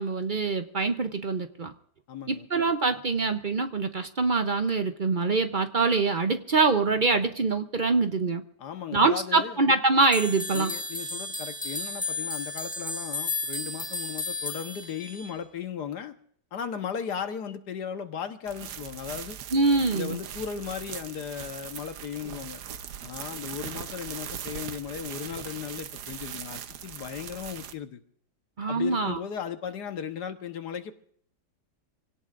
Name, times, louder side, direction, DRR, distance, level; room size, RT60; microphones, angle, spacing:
voice 1, 0.0-1.7 2.3-8.4 8.9-10.7 19.5-20.2 28.6-29.2, right 3 dB, 45° right, 8 dB, 0.6 m, -24 dB
voice 2, 2.1-2.5 8.6-9.6 10.5-16.1 16.5-19.4 19.9-22.6 23.0-28.0 28.7-30.9, left 8 dB, 75° left, 8 dB, 1.7 m, -36 dB
sound 1, 10.1-15.3, left 2 dB, 5° left, 1.8 m, -33 dB
sound 2, 18.5-27.7, right 9 dB, 70° right, 1.4 m, -40 dB
26.0 x 17.5 x 2.5 m, 0.62 s
omnidirectional pair, 1.8 m